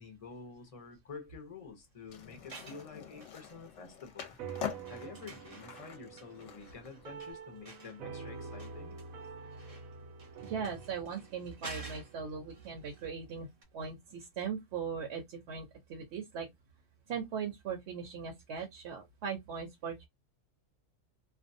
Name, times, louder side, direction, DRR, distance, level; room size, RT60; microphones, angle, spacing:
voice 1, 0.0-4.4 4.9-9.0, left 4 dB, 40° left, 0.5 m, -49 dB
Skateboard, 2.1-7.3, left 9 dB, 70° left, 0.9 m, -45 dB
sound 1, 2.3-3.9 4.3-13.3 13.6-13.7, right 3 dB, 35° right, 0.6 m, -53 dB
sound 2, 4.4-13.1, right 5 dB, 90° right, 1.0 m, -47 dB
voice 2, 10.5-13.5 13.7-16.5 17.1-20.1, right 6 dB, 60° right, 0.9 m, -39 dB
2.6 x 2.2 x 2.5 m
omnidirectional pair, 1.4 m